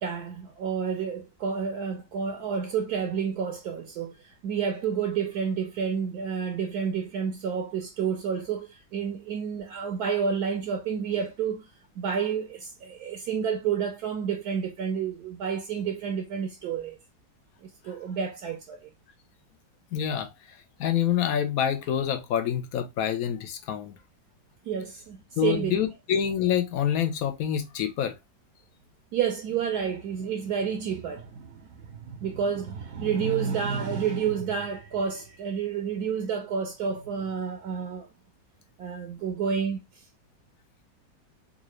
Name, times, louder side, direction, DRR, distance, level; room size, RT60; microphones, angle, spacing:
voice 1, 0.0-11.7 12.0-17.0 17.6-18.9 24.6-25.8 29.1-38.1 38.8-40.0, right 7 dB, 70° right, 1.1 m, -30 dB
voice 2, 19.9-20.3 20.8-23.9 25.4-28.1, left 9 dB, 70° left, 0.9 m, -26 dB
3.8 x 2.4 x 3.0 m
omnidirectional pair, 1.9 m